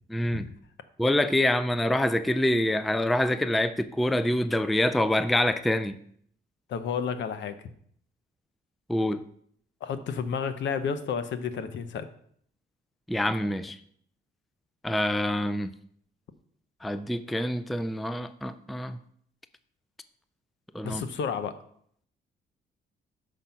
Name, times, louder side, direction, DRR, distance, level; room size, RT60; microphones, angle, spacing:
voice 1, 0.1-0.5 1.0-6.0 8.9-9.2 13.1-13.8 14.8-15.7 16.8-19.0 20.7-21.0, left 1 dB, ahead, 12 dB, 0.3 m, -26 dB
voice 2, 6.7-7.6 9.8-12.1 20.8-21.6, left 6 dB, 65° left, 11 dB, 0.8 m, -31 dB
6.0 x 5.0 x 5.7 m, 0.64 s
cardioid pair, 90°, 20 cm